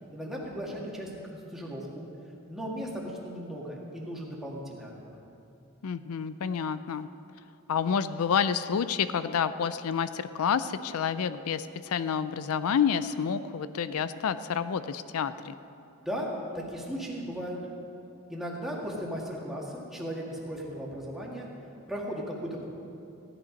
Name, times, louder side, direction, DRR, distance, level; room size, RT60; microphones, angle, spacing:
voice 1, 0.1-2.0 2.5-5.1 16.0-16.3 16.5-17.6 18.3-21.5 21.9-22.7, equal, ahead, -4 dB, 1.9 m, -36 dB
voice 2, 5.8-7.1 7.7-15.5, left 7 dB, 80° left, 13 dB, 0.4 m, -29 dB
16.0 x 11.0 x 5.2 m, 2.8 s
head